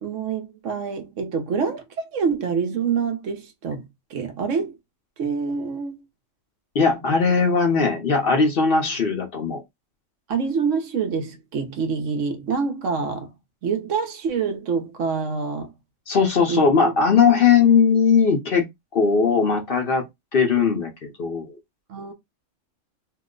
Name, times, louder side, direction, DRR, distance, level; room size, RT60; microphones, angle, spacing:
voice 1, 0.0-4.8 5.2-6.0 10.3-13.3 13.6-15.7 16.5-16.9 21.9-22.1, right 5 dB, 75° right, 1.1 m, -26 dB
voice 2, 6.7-9.6 16.1-18.6 18.9-20.1 20.3-21.6, left 5 dB, 55° left, 0.8 m, -19 dB
2.9 x 2.1 x 3.7 m
omnidirectional pair, 1.3 m